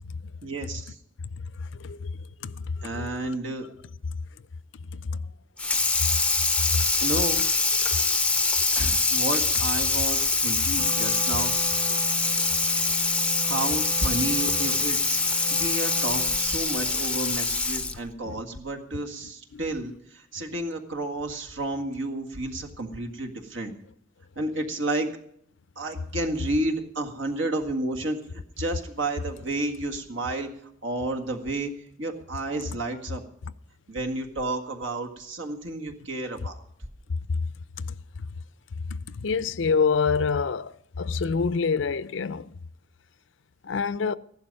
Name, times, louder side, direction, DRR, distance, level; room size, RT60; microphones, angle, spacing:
voice 1, 0.4-1.0 2.8-3.7 7.0-7.5 8.8-11.6 13.4-15.2 15.5-23.7 24.4-25.2 25.8-30.5 30.8-31.7 32.0-33.2 33.9-36.6, right 2 dB, 70° right, 1.9 m, -31 dB
Water tap faucet / Sink (filling or washing), 5.6-18.1, left 3 dB, 5° left, 0.6 m, -24 dB
Wind instrument woodwind instrument, 10.7-16.7, right 4 dB, 35° right, 0.7 m, -38 dB
voice 2, 39.2-40.7 41.0-42.5 43.6-44.1, left 5 dB, 65° left, 0.5 m, -25 dB
15.0 x 11.5 x 5.4 m
head